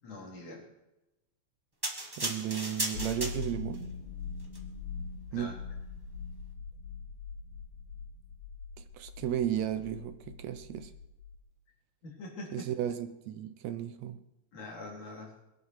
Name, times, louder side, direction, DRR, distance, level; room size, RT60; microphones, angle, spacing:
voice 1, 0.0-0.7 5.3-5.5 12.0-12.7 14.5-15.3, left 2 dB, 75° left, 5.3 m, -43 dB
sound 1, 1.8-3.8 4.4-4.6, right 1 dB, 15° right, 0.7 m, -35 dB
voice 2, 2.2-3.9 5.3-5.6 8.8-10.9 12.5-14.2, right 10 dB, 75° right, 1.8 m, -34 dB
sound 2, 2.9-11.4, left 5 dB, 50° left, 4.3 m, -42 dB
22.0 x 11.5 x 4.7 m
omnidirectional pair, 3.4 m